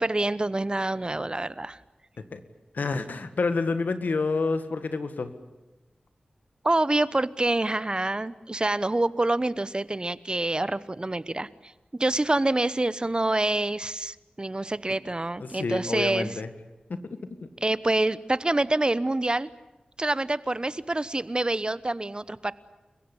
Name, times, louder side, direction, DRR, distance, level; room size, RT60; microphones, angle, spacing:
voice 1, 0.0-1.8 6.6-11.5 12.0-16.3 17.6-19.5 20.0-22.5, right 2 dB, 30° right, 17 dB, 1.0 m, -26 dB
voice 2, 2.7-5.3 15.4-16.5 16.9-17.5, left 4 dB, 85° left, 10 dB, 1.8 m, -29 dB
29.0 x 16.0 x 10.0 m, 1.1 s
cardioid pair, 45°, 3 cm